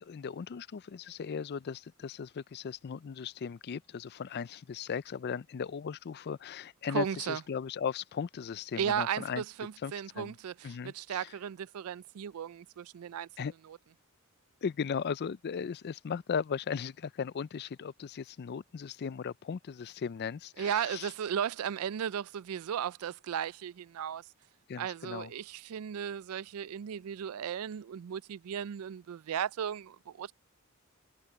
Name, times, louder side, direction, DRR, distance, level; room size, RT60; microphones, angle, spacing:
voice 1, 0.0-9.4 9.8-10.3 10.6-11.3 13.4-13.5 14.6-21.1 24.7-25.3, left 6 dB, 50° left, 0.4 m, -37 dB
voice 2, 6.9-7.4 8.8-13.3 13.7-13.8 20.6-24.2 24.8-30.3, right 8 dB, 90° right, 0.4 m, -35 dB
head